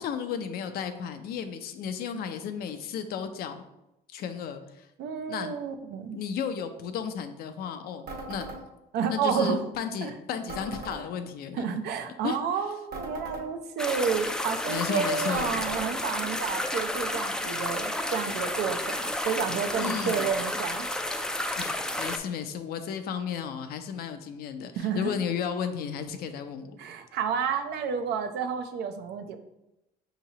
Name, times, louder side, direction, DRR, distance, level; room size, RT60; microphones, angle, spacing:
voice 1, 0.0-3.6 4.1-4.9 5.3-5.5 6.1-8.5 9.1-11.8 12.2-12.4 14.7-15.7 19.8-20.3 21.6-26.7, left 7 dB, 65° left, 8 dB, 0.5 m, -34 dB
voice 2, 5.0-6.2 8.9-9.7 10.0-10.1 11.5-20.9 24.8-25.1 26.8-29.4, right 6 dB, 75° right, 8 dB, 0.5 m, -30 dB
sound 1, 8.1-8.6 10.5-11.0 12.9-13.5 15.3-15.9, right 2 dB, 60° right, 1.2 m, -38 dB
sound 2, 13.8-22.2, left 1 dB, 5° left, 0.3 m, -31 dB
5.6 x 2.9 x 2.8 m, 0.91 s
cardioid pair, 110°, 17 cm